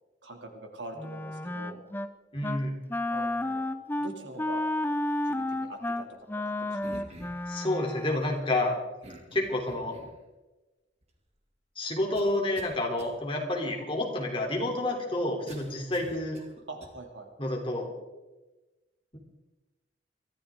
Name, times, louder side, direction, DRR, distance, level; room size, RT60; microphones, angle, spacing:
voice 1, 0.2-1.8 3.1-3.6 4.0-4.6 5.2-6.1 6.4-7.0 16.7-17.3, right 2 dB, 75° right, 3 dB, 2.7 m, -43 dB
Wind instrument woodwind instrument, 1.0-2.1 2.4-2.6 2.9-8.2, left 1 dB, 10° left, 0.6 m, -32 dB
voice 2, 2.3-2.8 7.5-8.8 9.3-10.0 11.7-16.4 17.4-17.9, left 1 dB, 30° left, 0 dB, 3.2 m, -29 dB
sound 1, 6.8-7.5 9.0-10.2 11.0-11.1 12.1-12.7 13.0-13.1 15.5-16.9, right 1 dB, 35° right, 2.4 m, -48 dB
23.0 x 14.5 x 3.7 m, 1.1 s
head